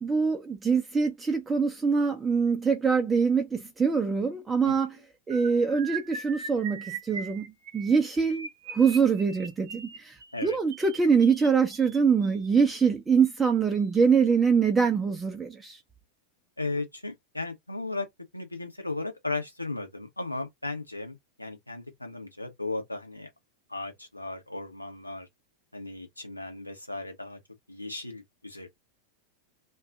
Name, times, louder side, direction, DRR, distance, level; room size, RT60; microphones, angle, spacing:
voice 1, 0.0-5.0 5.3-7.5 7.7-10.1 10.4-15.8, right 5 dB, 15° right, 0.5 m, -24 dB
sound 1, 5.3-12.5 13.2-13.5 13.7-14.0 14.3-14.5, right 5 dB, 60° right, 0.7 m, -41 dB
voice 2, 16.6-18.1 18.3-23.3 23.7-25.3 25.7-27.4 27.7-28.7, left 2 dB, 85° left, 0.8 m, -36 dB
2.5 x 2.3 x 3.6 m
figure-of-eight pair, 90°, 0 cm